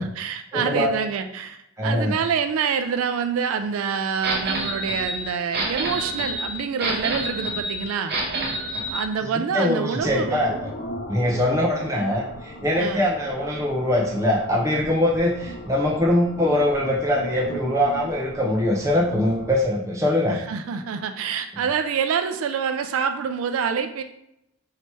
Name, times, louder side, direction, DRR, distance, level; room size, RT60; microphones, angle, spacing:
voice 1, 0.0-8.1 8.9-10.6 12.8-13.1 20.3-24.0, right 6 dB, 85° right, 8 dB, 0.3 m, -26 dB
voice 2, 0.5-0.9 1.8-2.1 9.5-10.7 11.1-20.4, left 1 dB, 15° right, -4 dB, 0.7 m, -22 dB
sound 1, 4.2-9.0, right 1 dB, 50° right, 0.7 m, -28 dB
radio reception sound with alien female voices modulations, 10.0-19.6, equal, 50° left, 0.5 m, -38 dB
3.1 x 2.9 x 4.5 m, 0.79 s
head